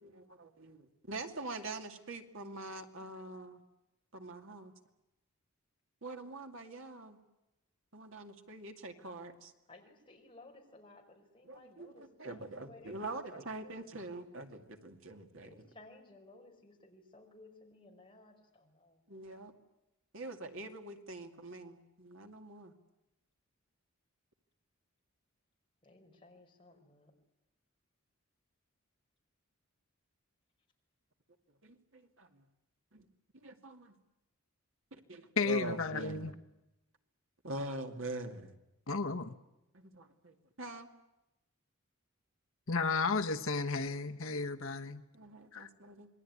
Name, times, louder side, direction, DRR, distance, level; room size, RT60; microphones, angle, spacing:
voice 1, 0.0-3.6 4.1-4.7 6.0-7.2 7.9-9.5 11.4-15.6 19.1-19.5 20.1-22.7 31.6-32.4 32.9-33.1 33.4-33.9 34.9-36.3 37.4-38.5 39.7-40.9 45.1-46.1, right 2 dB, 65° right, 5 dB, 2.4 m, -44 dB
voice 2, 9.7-13.9 15.4-19.0 25.8-27.1, left 2 dB, 25° left, 1 dB, 4.9 m, -58 dB
voice 3, 35.4-36.3 38.9-39.3 42.7-45.0 45.5-45.7, left 4 dB, 70° left, 7 dB, 1.2 m, -33 dB
27.0 x 21.5 x 9.5 m, 0.97 s
head